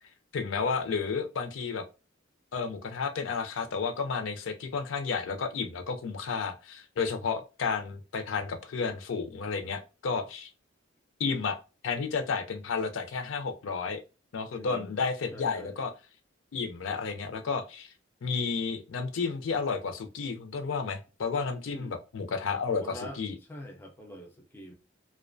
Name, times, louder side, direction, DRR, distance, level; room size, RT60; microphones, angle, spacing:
voice 1, 0.3-1.8 2.5-10.5 11.2-11.6 11.8-14.0 14.3-15.9 16.5-17.9 18.2-23.3, left 5 dB, 80° left, 0.4 m, -32 dB
voice 2, 14.5-15.0 15.3-15.8 21.7-22.0 22.6-23.2 23.5-24.7, equal, 10° left, 0.3 m, -44 dB
2.5 x 2.1 x 2.5 m
head